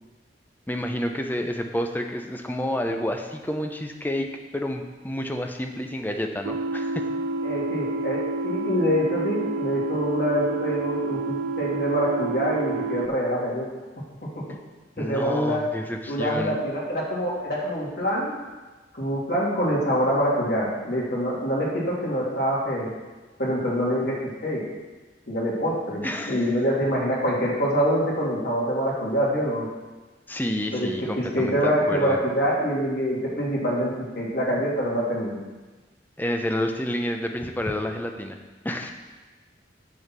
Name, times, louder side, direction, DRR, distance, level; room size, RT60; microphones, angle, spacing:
voice 1, 0.7-7.1 15.0-16.6 26.0-26.5 30.3-32.2 36.2-38.4 38.6-38.9, left 1 dB, 10° left, 4 dB, 0.6 m, -29 dB
sound 1, 6.4-13.1, right 3 dB, 65° right, 0.4 m, -29 dB
voice 2, 7.4-13.7 14.3-14.4 15.0-15.6 16.1-18.3 18.9-22.9 23.4-24.6 25.3-29.7 30.7-35.4, equal, 55° left, -5 dB, 2.7 m, -25 dB
7.1 x 6.6 x 6.0 m, 1.2 s
head